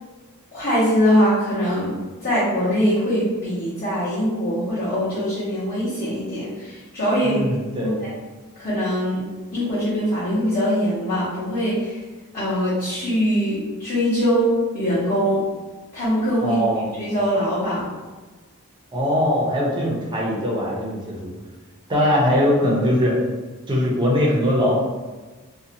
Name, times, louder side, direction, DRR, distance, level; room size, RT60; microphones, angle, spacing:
voice 1, 0.5-1.9 2.2-8.1 8.6-9.2 9.5-12.0 12.3-15.4 15.9-16.6 16.9-17.9, equal, 35° left, -13 dB, 0.9 m, -22 dB
voice 2, 7.2-8.0 16.4-16.9 18.9-21.3 21.9-23.2 23.7-24.7, left 1 dB, 20° right, -4 dB, 0.5 m, -21 dB
2.6 x 2.1 x 2.6 m, 1.3 s
head